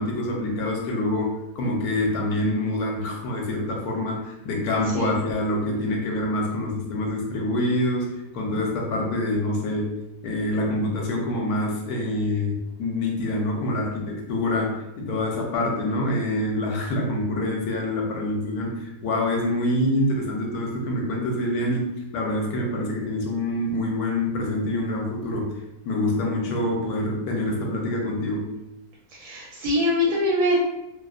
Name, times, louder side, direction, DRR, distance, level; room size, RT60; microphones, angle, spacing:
voice 1, 0.0-10.0 10.2-25.6 25.9-28.5, left 1 dB, 80° left, 0 dB, 1.1 m, -26 dB
voice 2, 29.1-30.6, left 1 dB, 85° right, -4 dB, 1.1 m, -23 dB
2.7 x 2.0 x 2.3 m, 0.91 s
omnidirectional pair, 1.6 m